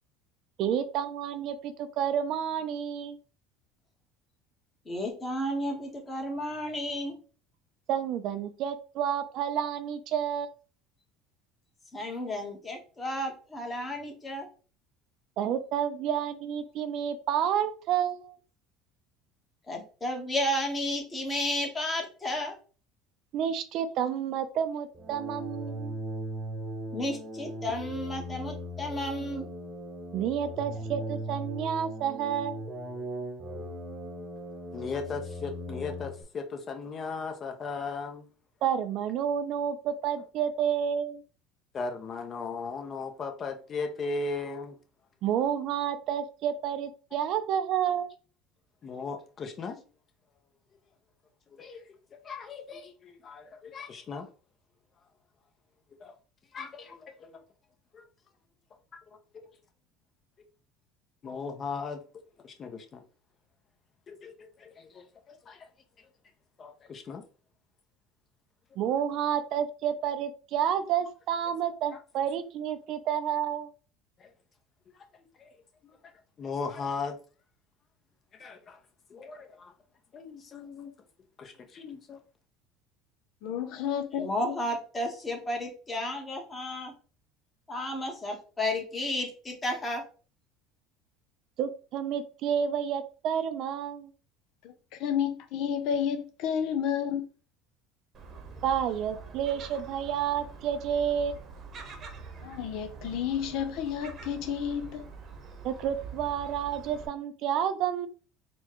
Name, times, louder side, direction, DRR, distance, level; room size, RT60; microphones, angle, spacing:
voice 1, 0.6-3.2 7.9-10.5 15.4-18.3 23.3-26.0 30.1-32.6 38.6-41.2 45.2-48.1 68.8-73.7 91.6-94.1 98.6-101.4 105.6-108.1, right 9 dB, 60° right, 0.4 m, -30 dB
voice 2, 4.8-7.2 11.9-14.5 19.7-22.6 26.9-29.5 84.2-86.9 87.7-90.0, left 1 dB, 20° left, 1.2 m, -32 dB
sound 1, 24.9-36.2, equal, 15° right, 0.8 m, -38 dB
voice 3, 34.7-38.3 41.7-44.8 48.8-49.8 51.5-51.8 52.2-54.3 56.0-56.1 56.5-57.4 57.9-58.0 59.1-59.5 61.2-63.0 64.1-65.7 66.0-66.1 66.6-67.2 71.9-72.0 74.2-74.3 74.9-75.0 75.4-75.5 75.8-76.1 76.4-77.2 78.3-78.8 79.1-79.7 80.1-80.9 81.4-82.2, left 4 dB, 35° left, 0.7 m, -38 dB
voice 4, 83.4-84.5 94.6-97.2 102.4-105.1, left 8 dB, 65° left, 0.5 m, -31 dB
Gull seagull, 98.1-107.1, right 5 dB, 40° right, 0.9 m, -45 dB
4.2 x 2.3 x 3.0 m
supercardioid pair, 100°, 0 cm